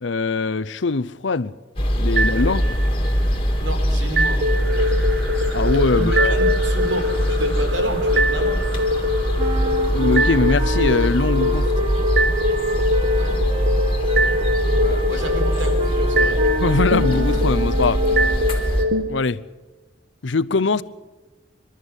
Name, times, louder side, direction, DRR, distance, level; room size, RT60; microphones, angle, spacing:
voice 1, 0.0-1.5 1.9-2.6 5.5-6.4 9.9-11.7 14.8-15.0 16.6-18.0 19.1-19.4 20.2-20.8, left 3 dB, 75° left, 0.7 m, -22 dB
sound 1, 1.8-18.9, equal, 30° left, 3.1 m, -22 dB
sound 2, 2.2-3.1 4.2-19.0, equal, 60° right, 1.6 m, -23 dB
voice 2, 3.6-4.4 5.9-8.6 13.1-13.4 15.1-16.4, equal, 80° right, 4.3 m, -30 dB
sound 3, 9.4-18.5, right 2 dB, 30° right, 1.1 m, -32 dB
26.0 x 13.0 x 9.9 m
head